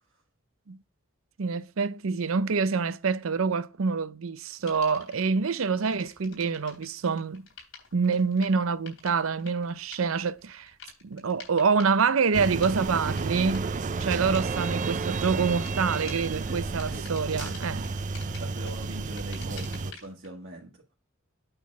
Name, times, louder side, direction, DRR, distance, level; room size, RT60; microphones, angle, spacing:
voice 1, 1.4-7.5 7.9-10.7 11.0-13.7 14.0-17.8, right 5 dB, 90° right, 0.6 m, -26 dB
sound 1, 4.7-5.3 5.7-20.3, left 5 dB, 80° left, 3.5 m, -49 dB
sound 2, 12.3-19.9, right 4 dB, 40° right, 0.5 m, -31 dB
voice 2, 16.5-17.1 17.4-17.9 18.3-20.8, right 1 dB, 65° right, 1.8 m, -42 dB
8.9 x 4.1 x 5.3 m
head